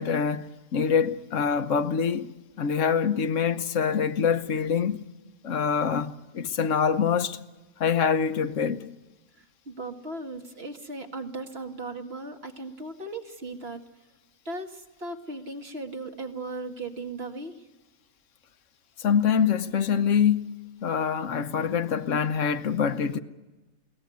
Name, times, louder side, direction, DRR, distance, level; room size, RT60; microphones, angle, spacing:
voice 1, 0.0-5.1 5.4-7.4 7.8-8.9 19.0-20.5 20.8-23.2, left 7 dB, 60° left, 1.2 m, -25 dB
voice 2, 9.3-13.8 14.5-17.6, right 2 dB, 45° right, 2.1 m, -37 dB
22.5 x 18.0 x 9.4 m
omnidirectional pair, 1.5 m